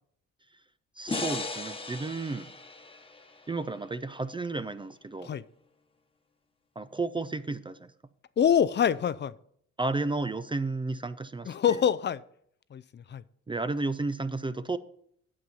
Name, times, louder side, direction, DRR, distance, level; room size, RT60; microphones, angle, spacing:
voice 1, 1.0-2.5 3.5-5.3 6.8-7.9 9.8-11.5 13.5-14.8, right 3 dB, 15° right, 0.4 m, -32 dB
sound 1, 1.1-4.3, left 3 dB, 20° left, 1.1 m, -37 dB
voice 2, 8.4-9.3 11.4-12.2 12.7-13.2, left 8 dB, 35° left, 0.5 m, -25 dB
8.7 x 7.6 x 5.5 m
cardioid pair, 90°, 30 cm